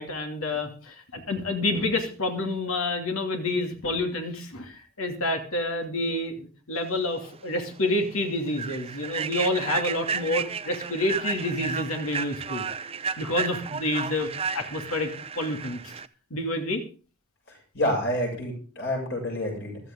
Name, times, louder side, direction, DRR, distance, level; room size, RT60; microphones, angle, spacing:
voice 1, 0.0-12.6 13.2-15.1 15.4-15.8 16.3-16.8, left 2 dB, 90° left, 4 dB, 2.8 m, -28 dB
Human voice / Train, 7.2-7.3 7.8-8.0 8.5-16.1, right 5 dB, 30° right, 0.6 m, -33 dB
voice 2, 17.5-19.8, left 1 dB, 60° left, 1 dB, 7.2 m, -28 dB
15.5 x 13.5 x 3.9 m, 0.37 s
head